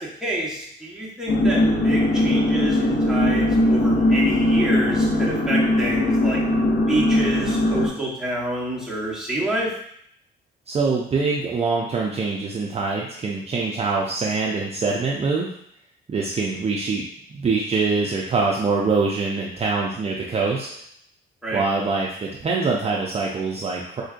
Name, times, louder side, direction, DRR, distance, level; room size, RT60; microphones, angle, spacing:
voice 1, 0.0-6.4 6.9-9.7 21.4-21.6, right 1 dB, 5° right, -5 dB, 1.1 m, -28 dB
sound 1, 1.3-7.9, left 1 dB, 50° left, 0.9 m, -20 dB
voice 2, 10.7-15.5 16.1-17.0 17.3-20.7 21.5-24.0, right 4 dB, 30° right, -2 dB, 0.5 m, -24 dB
4.5 x 2.5 x 2.5 m, 0.70 s
cardioid pair, 90°, 20 cm